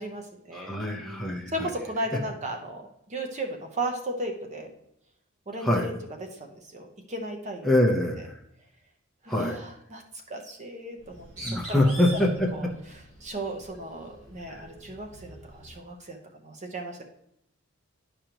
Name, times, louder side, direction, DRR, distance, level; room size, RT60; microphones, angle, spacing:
voice 1, 0.0-0.8 1.0-2.8 3.1-4.7 5.5-6.0 6.3-7.8 9.2-10.0 10.3-11.8 12.1-12.7 12.9-16.2 16.4-17.0, right 1 dB, 35° right, 3 dB, 0.8 m, -36 dB
voice 2, 0.5-1.5 5.6-5.9 7.6-8.4 9.3-9.6 11.4-12.5 14.5-14.6, left 1 dB, ahead, -2 dB, 0.8 m, -24 dB
Bird, 11.0-15.8, right 1 dB, 60° right, 2.9 m, -44 dB
10.5 x 5.1 x 3.0 m, 0.77 s
head